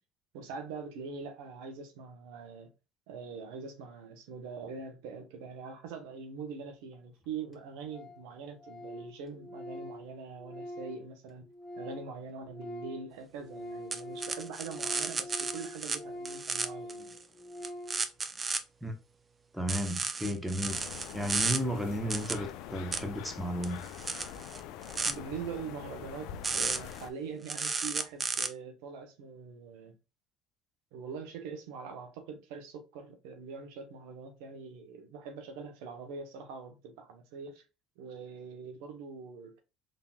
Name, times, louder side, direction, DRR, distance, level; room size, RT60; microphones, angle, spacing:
voice 1, 0.3-2.7 3.1-11.4 11.8-17.1 25.0-29.9 30.9-37.6 38.0-39.6, right 5 dB, 85° right, 1.0 m, -43 dB
Organ, 6.9-7.0 7.2-7.3 7.5-7.6 7.9-8.3 8.5-12.1 12.4-18.1, left 1 dB, 20° left, 1.1 m, -44 dB
sound 1, 13.9-16.0 16.3-17.2 17.6-18.6 19.7-21.6 22.1-22.3 22.9-23.0 23.6-25.1 26.4-27.0 27.5-28.5, right 4 dB, 25° right, 0.6 m, -33 dB
voice 2, 19.5-23.8, equal, 5° right, 1.0 m, -34 dB
sound 2, 20.7-27.1, left 9 dB, 75° left, 0.5 m, -44 dB
3.9 x 3.7 x 2.3 m
supercardioid pair, 100°, 0 cm